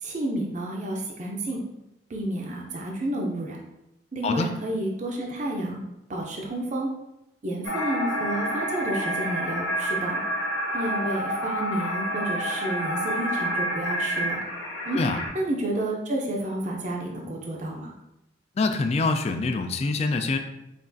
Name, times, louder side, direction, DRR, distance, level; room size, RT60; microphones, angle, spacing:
voice 1, 0.0-1.6 2.1-3.6 4.1-5.8 6.1-6.9 7.4-10.2 10.7-14.4 14.9-15.0 15.3-17.9, right 1 dB, 40° right, -1 dB, 0.5 m, -30 dB
sound 1, 7.6-15.3, equal, 90° left, 1.1 m, -29 dB
voice 2, 18.6-20.4, left 3 dB, 35° left, 7 dB, 0.3 m, -25 dB
5.7 x 2.4 x 2.6 m, 0.88 s
head